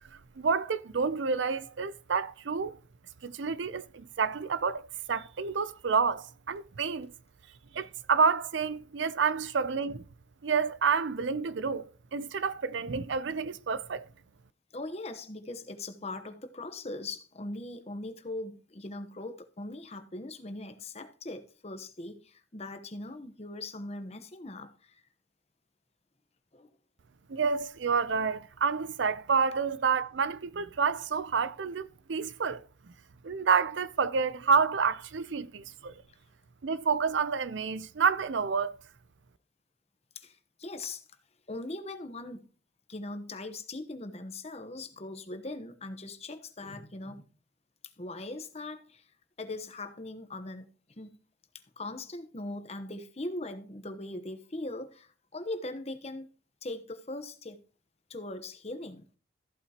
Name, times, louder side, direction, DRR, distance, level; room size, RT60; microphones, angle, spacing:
voice 1, 0.4-2.8 3.2-7.1 7.7-10.0 10.4-14.1 27.3-32.6 33.2-35.9 36.6-38.7, right 5 dB, 70° right, 0.5 m, -29 dB
voice 2, 14.7-25.0 26.5-26.7 40.1-41.0 41.5-42.5 42.9-47.2 48.0-49.1 49.4-50.7 51.0-51.2 51.8-56.3 56.6-57.6 58.1-59.1, left 2 dB, 35° left, 1.0 m, -40 dB
14.5 x 8.1 x 2.9 m
head